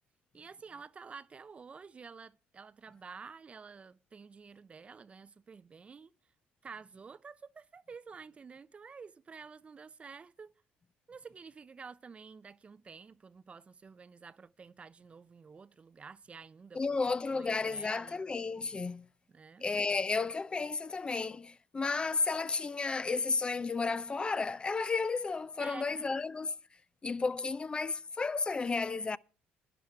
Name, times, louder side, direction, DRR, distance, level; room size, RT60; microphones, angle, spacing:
voice 1, 0.3-6.1 6.6-10.5 11.1-16.8 17.3-18.2 19.3-19.7 25.6-26.1, right 5 dB, 30° right, 0.6 m, -50 dB
voice 2, 16.7-19.1 19.6-26.6 27.0-29.2, left 4 dB, 25° left, 0.6 m, -33 dB
12.0 x 10.0 x 4.6 m
supercardioid pair, 90°, 4 cm